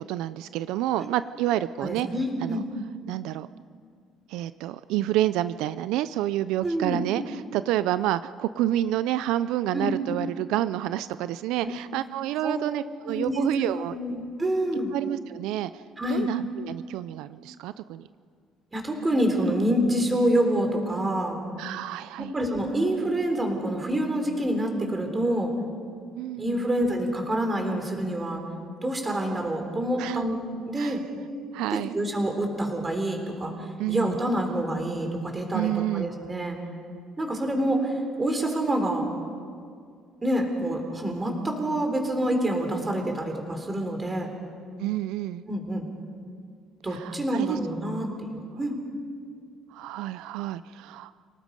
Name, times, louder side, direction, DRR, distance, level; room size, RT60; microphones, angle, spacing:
voice 1, 0.1-2.1 2.4-2.6 3.1-3.5 4.3-14.0 14.9-15.8 16.1-18.0 21.6-22.3 26.2-26.7 30.0-30.2 30.8-31.0 31.5-32.0 33.8-34.2 35.5-36.1 44.8-45.4 46.9-47.6 49.7-51.1, right 13 dB, 85° right, 14 dB, 0.4 m, -29 dB
voice 2, 1.8-2.7 6.6-7.0 9.7-9.9 11.6-11.7 12.4-12.6 13.1-14.9 16.0-16.3 18.7-21.4 22.2-25.5 26.4-28.4 28.8-31.0 31.7-33.5 33.9-36.6 37.2-37.9 38.2-39.1 40.2-44.3 45.5-45.9 46.8-48.7, right 1 dB, 15° right, 3 dB, 3.8 m, -27 dB
29.0 x 18.5 x 5.4 m, 2.2 s
cardioid pair, 125°, 0 cm